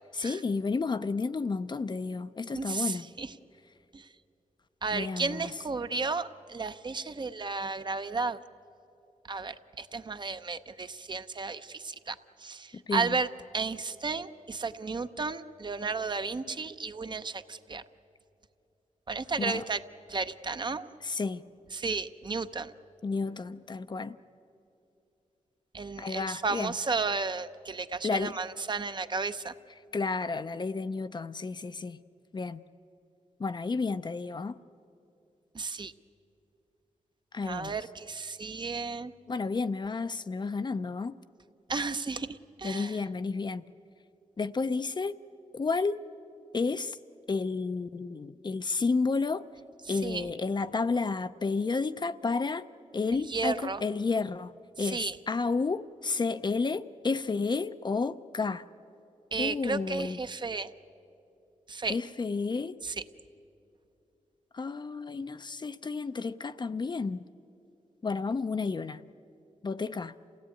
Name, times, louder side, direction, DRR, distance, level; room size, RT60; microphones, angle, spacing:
voice 1, 0.1-3.1 4.9-5.5 12.7-13.2 19.4-19.6 21.0-21.4 23.0-24.2 26.0-26.7 28.0-28.4 29.9-32.0 32.3-32.6 33.4-34.6 37.3-37.7 39.3-41.1 42.6-43.6 44.4-45.2 45.5-46.0 46.5-47.0 47.3-49.4 49.9-52.7 52.9-58.6 59.4-60.2 61.9-62.8 64.5-67.2 68.0-69.0 69.6-70.1, left 4 dB, 35° left, 0.5 m, -31 dB
voice 2, 2.5-3.3 3.9-4.1 4.8-8.4 9.3-13.3 13.5-17.8 19.1-19.8 20.1-20.9 21.7-22.7 25.7-29.5 35.5-35.9 37.4-39.1 41.7-43.0 49.9-50.3 53.1-53.8 54.8-55.2 59.3-60.7 61.7-62.0 62.8-63.0, right 4 dB, 35° right, 0.7 m, -33 dB
27.5 x 17.0 x 9.0 m
wide cardioid pair, 110°, 13 cm